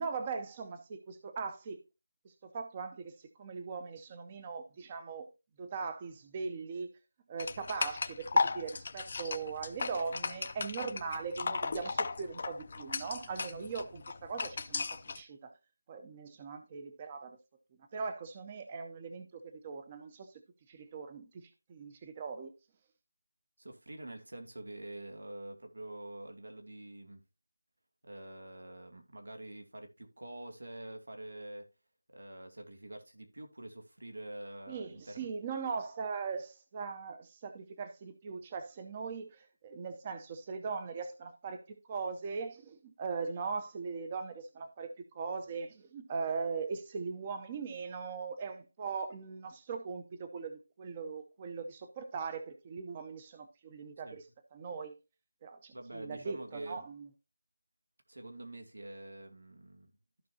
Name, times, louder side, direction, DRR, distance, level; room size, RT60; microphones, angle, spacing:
voice 1, 0.0-1.8 2.2-5.3 5.6-6.9 7.3-15.5 15.9-17.4 17.9-20.3 20.7-22.5 34.7-54.2 54.5-55.0 55.4-57.1, right 5 dB, 20° right, 0.7 m, -40 dB
sound 1, 7.4-15.2, left 4 dB, 35° left, 0.5 m, -35 dB
voice 2, 23.6-27.2 28.0-31.7 32.1-35.3 54.0-54.2 55.7-56.8 58.1-59.9, right 1 dB, 90° right, 2.5 m, -46 dB
14.0 x 5.2 x 2.8 m
figure-of-eight pair, 175°, 0 cm